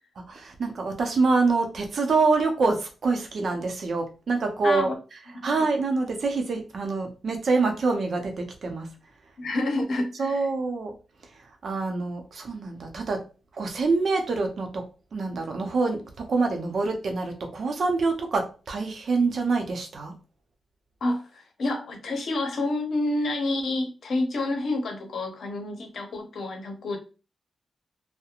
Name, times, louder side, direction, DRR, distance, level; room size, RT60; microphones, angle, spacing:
voice 1, 0.3-8.9 10.2-10.9 11.6-13.2 13.6-14.8 15.1-20.1, right 3 dB, 65° right, 4 dB, 0.6 m, -26 dB
voice 2, 4.6-5.0 5.3-5.5 9.4-10.5 21.0-27.0, left 2 dB, 70° left, 3 dB, 0.7 m, -28 dB
2.7 x 2.1 x 2.4 m, 0.33 s
supercardioid pair, 45°, 0 cm